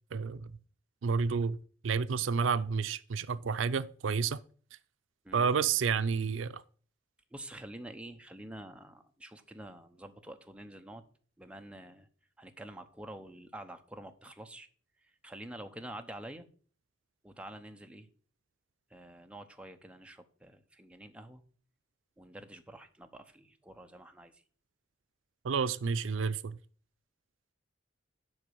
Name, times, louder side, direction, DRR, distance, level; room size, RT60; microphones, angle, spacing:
voice 1, 0.1-0.5 1.0-1.6 1.8-4.4 5.3-6.6 25.4-26.6, right 5 dB, 80° right, 0.4 m, -30 dB
voice 2, 7.3-11.0 11.4-12.1 12.4-14.7 15.2-16.5 17.2-18.1 18.9-21.4 22.2-24.4, right 1 dB, 5° right, 0.8 m, -47 dB
8.0 x 5.3 x 6.9 m
head